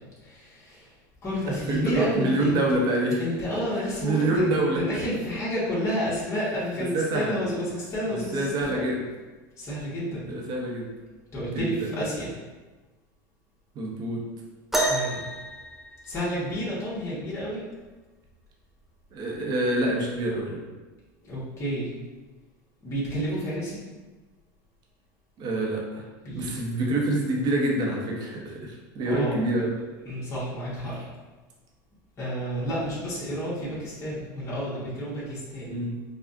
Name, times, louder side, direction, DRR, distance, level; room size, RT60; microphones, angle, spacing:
voice 1, 0.2-0.9 1.2-2.6 3.2-8.9 9.6-10.3 11.3-12.3 14.9-15.2 16.1-17.6 21.2-21.9 22.8-23.8 26.2-26.5 29.1-29.4 30.0-31.0 32.2-35.8, equal, 25° left, -9 dB, 1.4 m, -30 dB
voice 2, 1.5-3.2 3.5-4.8 6.4-6.5 6.8-7.4 8.1-9.0 10.3-10.9 11.5-11.9 13.7-14.2 19.1-20.6 25.4-26.0 26.3-29.7 35.7-36.0, right 1 dB, 40° right, -1 dB, 0.9 m, -27 dB
sound 1, 14.7-16.6 18.3-18.4 19.2-19.4 20.3-20.4, right 2 dB, 5° right, 0.6 m, -29 dB
4.9 x 2.4 x 2.7 m, 1.2 s
supercardioid pair, 115°, 10 cm